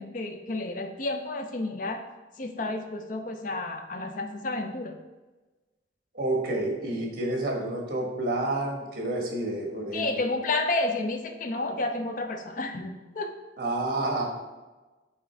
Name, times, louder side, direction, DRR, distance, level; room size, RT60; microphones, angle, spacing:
voice 1, 0.0-2.0 2.4-5.0 9.9-13.3, left 2 dB, 45° left, 5 dB, 0.5 m, -31 dB
voice 2, 6.1-10.2 13.6-14.3, right 2 dB, 55° right, 0 dB, 1.3 m, -29 dB
6.4 x 3.7 x 4.4 m, 1.2 s
head